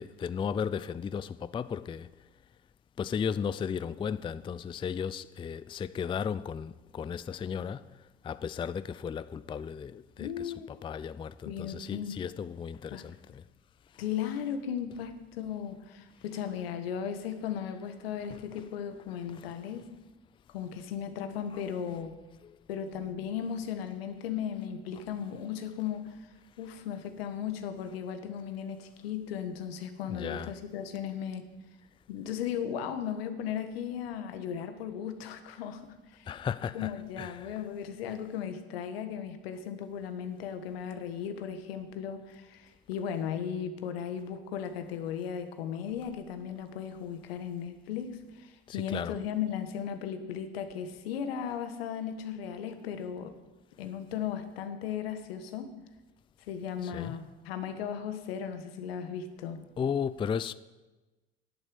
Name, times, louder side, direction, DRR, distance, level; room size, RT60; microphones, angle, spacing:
voice 1, 0.0-2.1 3.0-7.8 8.2-13.4 13.9-14.0 18.3-18.4 19.3-19.5 22.4-22.6 30.1-30.5 36.3-37.6 48.7-49.2 56.8-57.2 59.8-60.5, left 7 dB, 15° left, 0.4 m, -35 dB
voice 2, 10.2-10.7 11.4-12.2 12.9-13.0 14.0-19.9 20.5-22.2 22.7-26.2 26.6-31.4 32.1-36.3 36.7-53.3 53.8-55.7 56.5-59.6, left 8 dB, 80° left, 1.5 m, -36 dB
10.5 x 9.0 x 7.8 m
hypercardioid pair, 75°, 30 cm